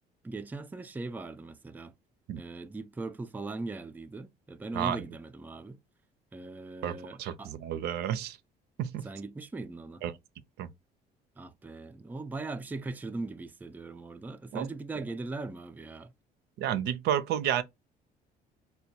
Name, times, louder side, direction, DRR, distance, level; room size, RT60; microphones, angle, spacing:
voice 1, 0.2-1.9 2.4-5.8 6.3-7.5 9.0-10.0 11.4-16.1, right 3 dB, 10° right, 0.4 m, -39 dB
voice 2, 6.8-8.4 8.8-9.1 10.0-10.1 10.6-10.7 14.5-14.7 16.6-17.6, right 10 dB, 75° right, 0.5 m, -31 dB
4.3 x 2.2 x 2.7 m
cardioid pair, 110°, 17 cm